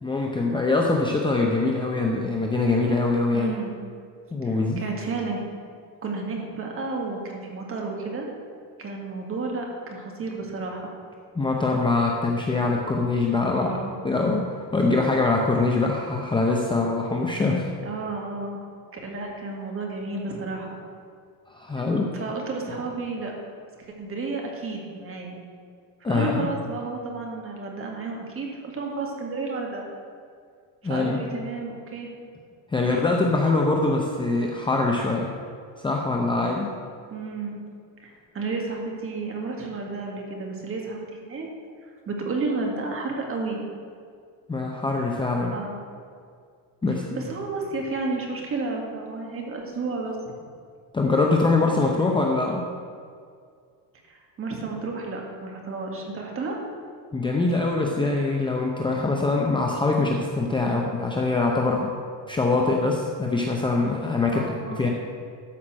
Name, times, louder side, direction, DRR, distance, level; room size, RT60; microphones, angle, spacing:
voice 1, 0.0-3.5 4.3-4.8 11.3-13.8 14.0-17.7 21.5-22.1 26.0-26.5 30.8-31.2 32.7-35.3 35.8-36.7 44.5-45.5 46.8-47.2 50.9-52.6 57.1-61.9 62.3-64.4 64.8-64.9, left 3 dB, 10° left, 0 dB, 0.7 m, -23 dB
voice 2, 3.3-3.8 4.4-5.4 6.0-8.3 8.8-10.9 13.5-14.0 17.8-18.6 18.9-20.8 21.8-23.3 23.8-25.4 26.0-29.9 30.8-32.1 37.1-37.6 38.0-41.5 42.1-43.6 45.4-45.8 47.2-50.3 54.1-56.6 60.6-60.9 64.3-64.9, right 3 dB, 30° right, 0 dB, 2.1 m, -32 dB
13.0 x 5.8 x 7.5 m, 2.2 s
cardioid pair, 155°, 44 cm